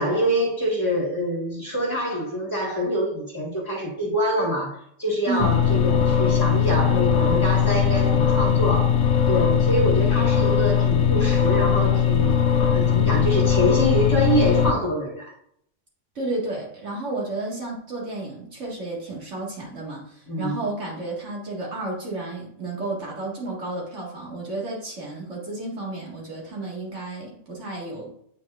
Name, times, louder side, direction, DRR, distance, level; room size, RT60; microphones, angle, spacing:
voice 1, 0.0-12.4 12.7-15.3 20.3-20.6, equal, 15° left, -4 dB, 1.4 m, -25 dB
voice 2, 5.3-5.6 16.2-28.1, right 2 dB, 75° right, -3 dB, 2.1 m, -32 dB
sound 1, 5.4-14.7, left 8 dB, 80° left, 0.9 m, -20 dB
8.6 x 4.7 x 2.4 m, 0.68 s
omnidirectional pair, 1.2 m